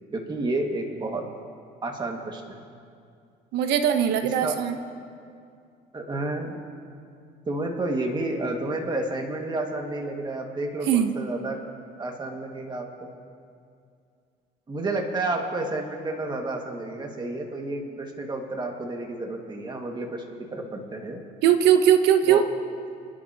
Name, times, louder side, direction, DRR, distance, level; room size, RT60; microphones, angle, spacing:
voice 1, 0.1-1.2 1.8-2.6 4.4-4.6 5.9-6.6 7.5-11.6 12.0-12.9 14.7-21.2 22.3-22.4, right 2 dB, 25° right, 1 dB, 1.9 m, -30 dB
voice 2, 3.5-4.8 10.9-11.2 21.4-22.4, right 9 dB, 85° right, 7 dB, 1.0 m, -20 dB
28.0 x 11.0 x 2.9 m, 2.3 s
cardioid pair, 110°, 17 cm